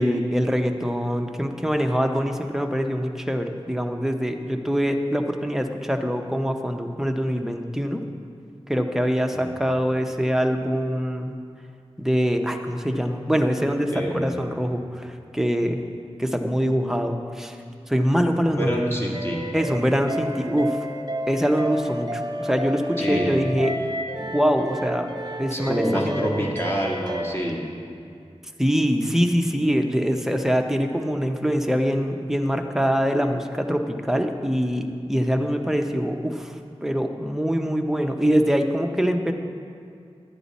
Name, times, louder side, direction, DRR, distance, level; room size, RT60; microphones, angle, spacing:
voice 1, 0.0-8.0 8.7-11.4 12.0-15.8 16.2-17.6 17.9-18.7 19.5-20.8 21.3-23.7 24.2-25.1 25.4-26.2 28.6-36.5 36.8-39.3, equal, 5° right, 4 dB, 0.7 m, -24 dB
voice 2, 13.9-14.3 18.5-19.4 23.0-23.4 25.5-27.6, right 1 dB, 20° left, -2 dB, 1.8 m, -26 dB
sound 1, 19.1-27.3, equal, 40° right, 0.6 m, -31 dB
10.0 x 9.5 x 4.2 m, 2.3 s
wide cardioid pair, 50°, 11 cm